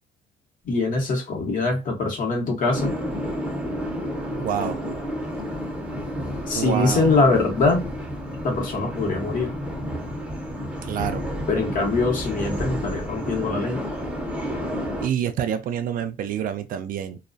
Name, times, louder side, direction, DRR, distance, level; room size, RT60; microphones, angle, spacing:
voice 1, 0.6-2.9 6.5-7.8 8.4-9.5 11.5-13.8, left 3 dB, 55° left, 1.0 m, -23 dB
sound 1, 2.7-15.1, equal, 5° right, 0.7 m, -30 dB
voice 2, 4.4-4.8 6.5-7.1 10.8-11.3 15.0-17.2, right 9 dB, 55° right, 0.4 m, -27 dB
2.3 x 2.2 x 2.5 m
cardioid pair, 110°, 17 cm